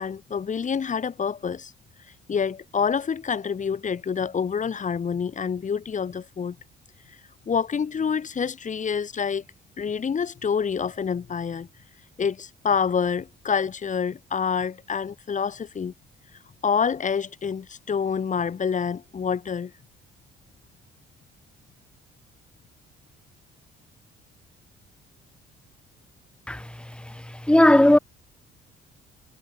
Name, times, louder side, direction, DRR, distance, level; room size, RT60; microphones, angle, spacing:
voice 1, 0.0-1.7 2.3-6.6 7.5-9.4 9.8-11.7 12.2-15.9 16.6-19.7, left 6 dB, 40° left, 2.5 m, -27 dB
voice 2, 27.5-28.0, left 1 dB, 5° left, 1.4 m, -15 dB
cardioid pair, 100°, 20 cm